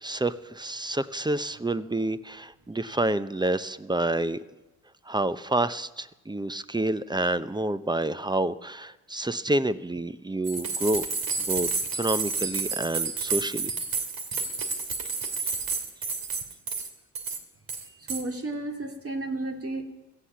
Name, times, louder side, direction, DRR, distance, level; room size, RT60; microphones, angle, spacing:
voice 1, 0.0-4.4 5.1-11.0 11.4-13.7, right 1 dB, 10° right, 15 dB, 0.7 m, -28 dB
sound 1, 10.4-16.9 17.2-17.4 17.7-18.2, right 4 dB, 55° right, 2.5 m, -30 dB
voice 2, 18.1-19.8, right 2 dB, 35° right, 4 dB, 2.8 m, -33 dB
17.0 x 14.0 x 5.8 m, 1.0 s
hypercardioid pair, 45°, 41 cm